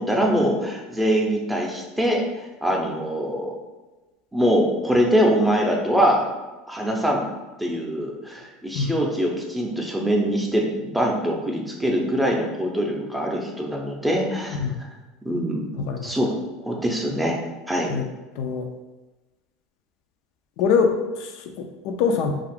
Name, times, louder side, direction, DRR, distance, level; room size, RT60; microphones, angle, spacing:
voice 1, 0.0-3.5 4.3-6.3 6.7-7.3 7.6-14.6 15.2-15.7 16.0-16.3 16.7-17.4 17.7-18.0, equal, 5° right, -1 dB, 0.5 m, -23 dB
voice 2, 14.5-14.8 15.7-16.2 17.9-18.1 18.3-18.7 20.6-22.3, left 5 dB, 65° left, 5 dB, 0.3 m, -24 dB
2.5 x 2.4 x 3.4 m, 1.2 s
supercardioid pair, 120°, 0 cm